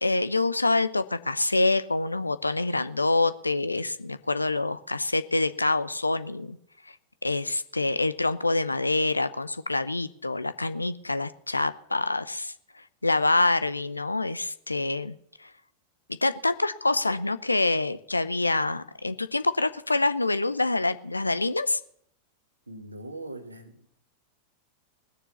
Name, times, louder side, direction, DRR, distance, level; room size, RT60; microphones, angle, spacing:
voice 1, 0.0-6.6 6.9-7.0 7.2-15.5 16.1-21.8, left 2 dB, 80° left, 13 dB, 0.6 m, -26 dB
voice 2, 22.7-23.9, right 1 dB, 80° right, 6 dB, 1.8 m, -41 dB
19.5 x 6.9 x 7.1 m, 0.71 s
figure-of-eight pair, 90°, 0 cm